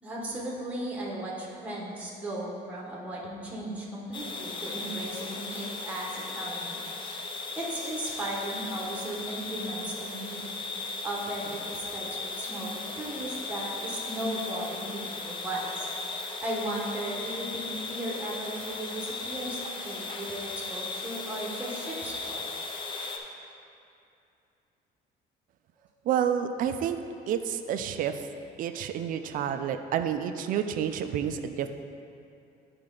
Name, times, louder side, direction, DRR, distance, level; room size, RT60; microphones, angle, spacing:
voice 1, 0.0-7.3 7.6-10.5 11.0-15.9 16.4-22.5, right 1 dB, 10° right, -4 dB, 1.0 m, -36 dB
sound 1, 4.1-23.2, left 3 dB, 30° left, 0.5 m, -37 dB
voice 2, 26.1-27.0 27.3-28.1 28.6-31.7, right 9 dB, 50° right, 8 dB, 0.4 m, -29 dB
10.5 x 4.3 x 3.8 m, 2.6 s
cardioid pair, 180°, 18 cm